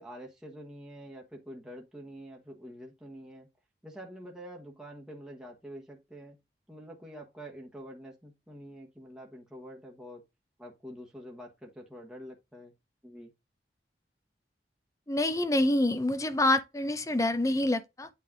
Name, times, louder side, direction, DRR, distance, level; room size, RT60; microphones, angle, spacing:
voice 1, 0.0-3.5 3.8-6.4 6.7-10.2 10.6-12.7 13.0-13.3, equal, 5° right, 1.2 m, -46 dB
voice 2, 15.1-18.1, left 1 dB, 20° left, 0.7 m, -27 dB
8.4 x 3.4 x 3.7 m
head